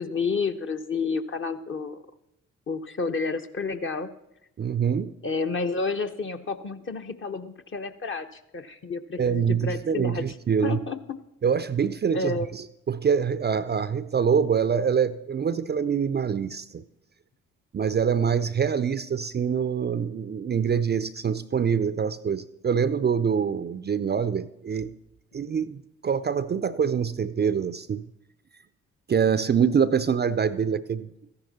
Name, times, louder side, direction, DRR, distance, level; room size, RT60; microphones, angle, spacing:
voice 1, 0.0-2.0 2.7-4.1 5.2-10.3 10.6-11.2 12.1-12.5, left 4 dB, 35° left, 7 dB, 1.0 m, -30 dB
voice 2, 4.6-5.1 9.2-10.8 11.4-16.8 17.7-24.9 25.3-28.0 29.1-31.1, right 7 dB, 30° right, 14 dB, 0.5 m, -25 dB
14.0 x 10.5 x 4.2 m, 0.85 s
hypercardioid pair, 40°, 35 cm